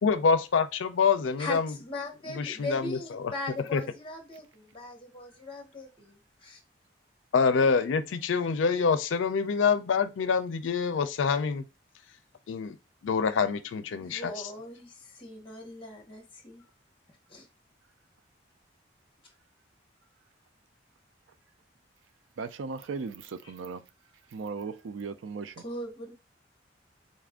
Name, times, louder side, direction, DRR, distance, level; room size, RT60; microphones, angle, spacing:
voice 1, 0.0-1.7 2.4-3.3 3.7-3.8 7.3-11.6 12.5-12.8 13.0-14.3, left 5 dB, 90° left, 0.4 m, -26 dB
voice 2, 1.4-6.6 14.0-16.6 17.3-17.5 25.6-26.1, left 2 dB, 30° left, 1.0 m, -39 dB
voice 3, 22.4-23.8 24.3-25.6, right 4 dB, 85° right, 0.4 m, -37 dB
4.0 x 2.5 x 3.5 m
head